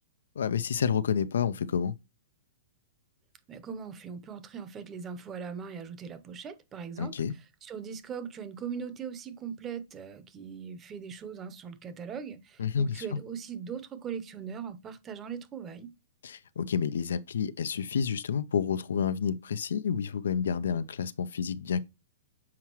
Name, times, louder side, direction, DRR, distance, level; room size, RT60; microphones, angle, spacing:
voice 1, 0.4-1.9 7.0-7.3 12.6-13.1 16.2-21.8, left 7 dB, 85° left, 0.5 m, -29 dB
voice 2, 3.5-7.1 7.6-15.9, right 7 dB, 15° right, 0.7 m, -40 dB
7.2 x 4.7 x 3.0 m
hypercardioid pair, 170°, 0 cm